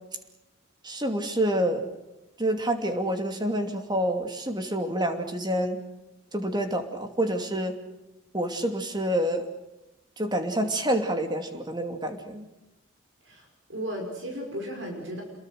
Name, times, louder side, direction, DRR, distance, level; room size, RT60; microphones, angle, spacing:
voice 1, 0.8-1.8 2.4-5.8 6.3-7.8 8.3-9.5 10.2-12.5, right 1 dB, 20° right, 6 dB, 2.7 m, -27 dB
voice 2, 13.2-15.2, equal, 60° right, 2 dB, 5.4 m, -35 dB
28.0 x 22.0 x 6.6 m, 0.96 s
head